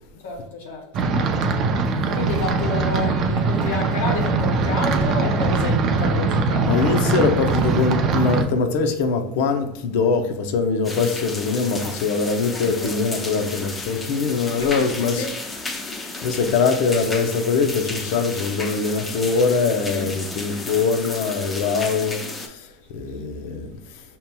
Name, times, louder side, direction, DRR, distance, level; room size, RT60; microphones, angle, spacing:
voice 1, 0.2-1.1 2.1-7.0 11.8-12.0 12.5-13.0 14.6-15.4 19.9-20.1, left 2 dB, 90° left, 1.2 m, -30 dB
sound 1, 0.9-8.4, right 4 dB, 40° right, 0.5 m, -21 dB
voice 2, 6.7-15.3 16.2-22.2 22.9-23.6, left 4 dB, 70° left, 0.6 m, -22 dB
sound 2, 10.8-22.5, left 2 dB, 15° left, 0.5 m, -33 dB
5.3 x 2.9 x 2.2 m
supercardioid pair, 135°, 0 cm